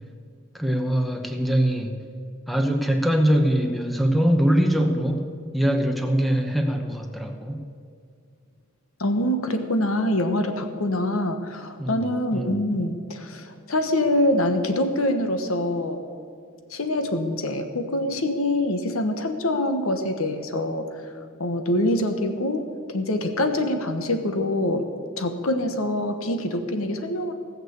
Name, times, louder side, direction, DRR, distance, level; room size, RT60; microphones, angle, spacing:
voice 1, 0.5-2.0 2.5-5.3 5.5-7.6 11.8-12.0 12.3-12.5, equal, ahead, 4 dB, 0.9 m, -22 dB
voice 2, 9.0-16.0 16.7-20.9 21.4-24.9 25.2-27.3, left 1 dB, 90° left, 7 dB, 1.2 m, -25 dB
16.5 x 6.6 x 8.0 m, 2.3 s
head